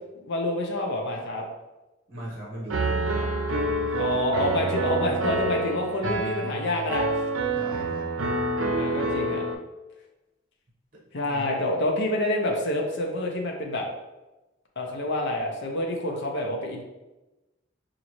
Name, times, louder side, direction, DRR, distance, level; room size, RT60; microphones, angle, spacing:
voice 1, 0.3-1.4 4.0-7.1 8.7-9.4 11.1-13.8 14.8-16.8, left 1 dB, 60° left, 0 dB, 0.6 m, -27 dB
voice 2, 2.1-4.2 7.5-8.1 11.2-11.6, right 1 dB, 45° right, -4 dB, 1.0 m, -39 dB
Piano, 2.7-9.5, right 2 dB, 85° right, 0.5 m, -27 dB
5.1 x 2.6 x 3.0 m, 1.1 s
head